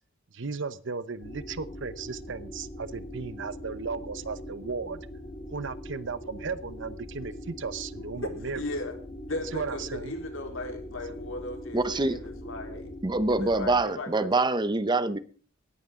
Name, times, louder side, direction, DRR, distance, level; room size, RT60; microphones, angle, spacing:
voice 1, 0.3-5.0 5.5-8.6 9.5-10.1, right 4 dB, 65° right, 15 dB, 0.9 m, -35 dB
sound 1, 1.2-13.8, left 1 dB, 35° left, 3.9 m, -42 dB
voice 2, 8.5-8.9 9.3-12.9 13.3-14.3, left 2 dB, 80° left, 3 dB, 3.9 m, -37 dB
voice 3, 11.7-12.2 13.0-15.2, right 2 dB, 20° right, 14 dB, 0.8 m, -25 dB
18.5 x 14.0 x 3.8 m, 0.40 s
head